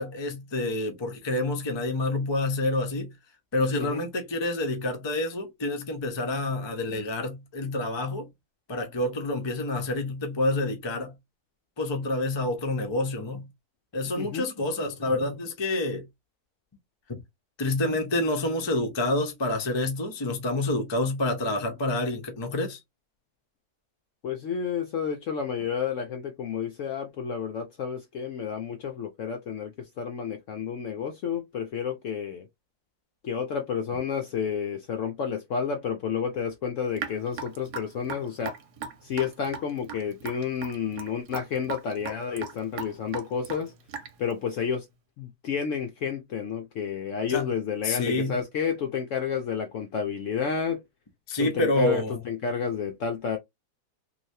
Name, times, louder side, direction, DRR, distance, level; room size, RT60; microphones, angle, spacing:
voice 1, 0.0-3.1 3.5-8.3 8.7-11.1 11.8-13.4 13.9-16.1 17.6-22.8 47.3-47.5 47.8-48.4 51.3-52.2, left 2 dB, 30° left, 0.5 m, -28 dB
voice 2, 24.2-32.5 33.2-38.5 39.0-43.7 44.2-44.9 45.2-50.8 51.4-53.4, left 6 dB, 70° left, 0.8 m, -30 dB
Raindrop / Drip, 37.0-44.3, right 6 dB, 80° right, 1.2 m, -38 dB
3.2 x 2.7 x 2.6 m
omnidirectional pair, 1.7 m